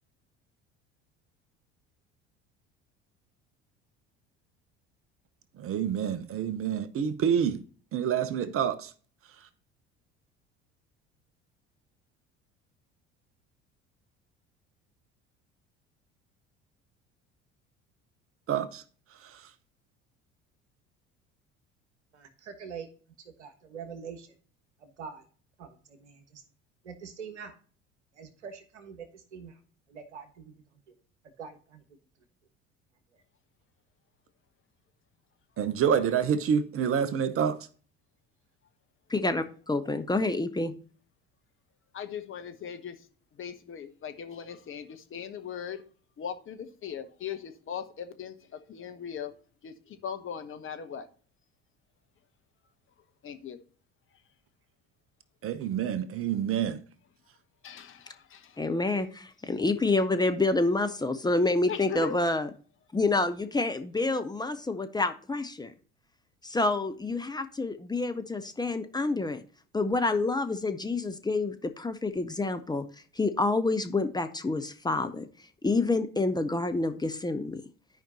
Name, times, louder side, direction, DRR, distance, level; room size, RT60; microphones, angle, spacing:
voice 1, 5.6-7.6 7.9-8.9 18.5-18.8 19.2-19.4 35.6-37.6 55.4-56.8, right 8 dB, 40° right, 0.8 m, -27 dB
voice 2, 22.1-22.9 23.2-24.4 24.8-25.3 25.6-26.4 26.8-27.6 28.1-29.6 29.9-31.0 31.4-31.8 33.1-33.2, right 6 dB, 75° right, 1.3 m, -44 dB
voice 3, 39.1-40.7 58.6-62.5 62.9-65.7 66.4-69.4 69.7-72.9 73.2-75.3 75.6-77.6, left 2 dB, 10° left, 0.7 m, -28 dB
voice 4, 41.9-43.1 43.3-45.8 46.2-49.3 49.6-51.1 53.2-53.6 57.6-58.6 61.7-62.1, left 8 dB, 35° left, 1.1 m, -39 dB
12.5 x 5.1 x 2.8 m
figure-of-eight pair, 60°, 35 cm